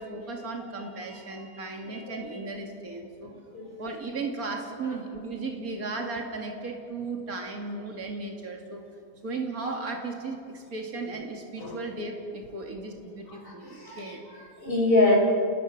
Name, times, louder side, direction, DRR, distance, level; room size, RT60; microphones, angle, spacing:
voice 1, 0.0-3.3 3.8-8.8 9.2-14.2, right 3 dB, 80° right, 1 dB, 2.9 m, -35 dB
voice 2, 1.9-2.2 3.5-3.8 11.6-11.8 13.3-15.2, left 2 dB, 40° left, -1 dB, 4.5 m, -26 dB
29.0 x 20.5 x 6.7 m, 2.3 s
omnidirectional pair, 1.5 m